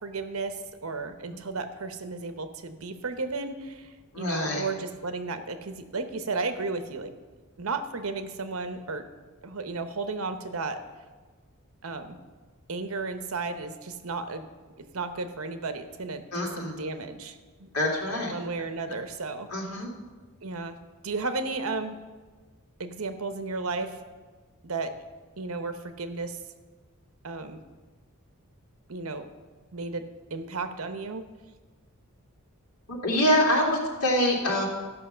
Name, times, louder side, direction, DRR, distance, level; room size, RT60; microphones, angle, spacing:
voice 1, 0.0-7.1 7.6-9.1 9.4-10.8 11.8-12.2 12.7-14.4 14.8-17.7 18.3-19.5 20.4-20.8 21.0-22.0 22.8-24.0 24.6-24.9 25.4-26.4 27.2-27.6 28.9-29.3 29.7-31.2, right 3 dB, 65° right, 8 dB, 0.9 m, -34 dB
voice 2, 4.1-4.7 16.3-16.8 17.7-18.3 19.5-19.9 32.9-34.7, left 1 dB, 85° left, -1 dB, 2.5 m, -25 dB
14.0 x 5.8 x 6.6 m, 1.4 s
head